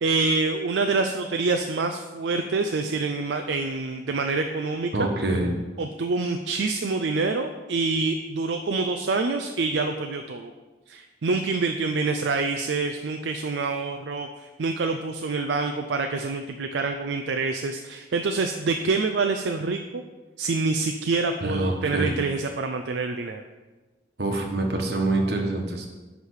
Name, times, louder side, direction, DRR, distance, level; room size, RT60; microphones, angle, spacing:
voice 1, 0.0-5.1 5.8-10.5 10.9-20.0 20.4-23.4, right 3 dB, 80° right, 5 dB, 0.5 m, -26 dB
voice 2, 4.9-5.5 21.4-22.2 24.2-25.9, right 2 dB, 65° right, 2 dB, 1.3 m, -25 dB
10.0 x 3.4 x 6.3 m, 1.2 s
head